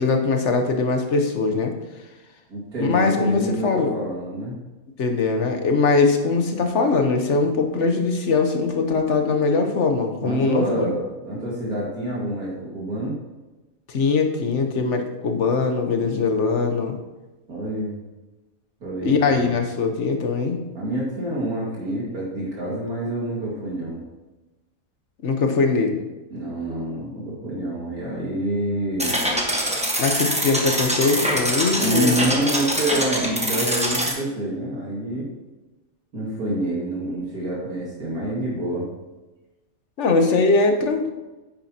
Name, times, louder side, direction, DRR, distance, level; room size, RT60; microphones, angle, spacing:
voice 1, 0.0-1.7 2.8-3.9 5.0-10.9 13.9-17.0 19.0-20.6 25.2-26.0 30.0-32.2 40.0-41.1, left 4 dB, 55° left, 5 dB, 1.3 m, -21 dB
voice 2, 2.5-4.6 10.2-13.2 17.5-18.0 18.8-19.5 20.7-24.0 26.3-29.2 31.8-35.3 36.1-38.9, right 1 dB, 85° right, -5 dB, 2.6 m, -27 dB
sound 1, 29.0-34.1, equal, 5° right, 1.1 m, -24 dB
10.0 x 8.8 x 2.9 m, 1.1 s
omnidirectional pair, 1.5 m